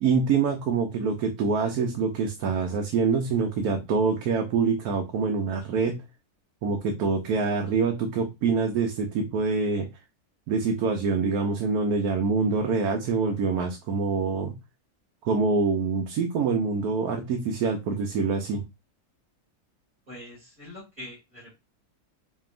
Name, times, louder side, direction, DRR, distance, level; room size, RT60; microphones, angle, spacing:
voice 1, 0.0-6.0 6.6-9.9 10.5-14.5 15.2-18.6, right 5 dB, 75° right, 3 dB, 1.2 m, -25 dB
voice 2, 20.1-21.6, left 1 dB, 30° right, -8 dB, 2.4 m, -43 dB
5.0 x 2.7 x 2.5 m, 0.23 s
omnidirectional pair, 1.6 m